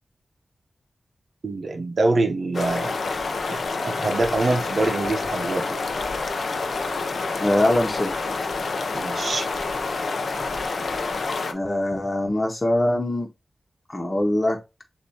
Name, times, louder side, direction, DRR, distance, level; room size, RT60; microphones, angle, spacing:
voice 1, 1.4-3.0 3.5-5.8 8.9-9.5, right 2 dB, 70° right, 0.9 m, -25 dB
sound 1, 2.5-11.5, left 3 dB, 90° left, 0.6 m, -28 dB
voice 2, 7.4-8.1 11.5-13.3 13.9-14.6, left 1 dB, 35° left, 1.2 m, -22 dB
6.7 x 2.7 x 2.8 m
wide cardioid pair, 80°, 0 cm